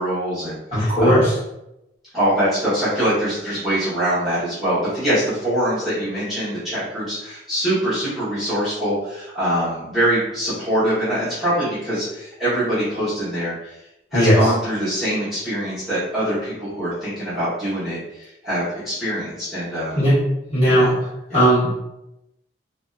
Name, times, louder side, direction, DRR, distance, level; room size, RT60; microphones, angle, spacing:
voice 1, 0.0-1.3 2.1-13.7 14.1-20.1 20.7-20.9 21.3-21.4, equal, ahead, -15 dB, 1.0 m, -24 dB
voice 2, 0.7-1.3 14.1-14.5 19.9-20.1 20.5-20.9 21.3-21.7, equal, 30° left, -11 dB, 1.3 m, -16 dB
2.5 x 2.2 x 2.3 m, 0.90 s
head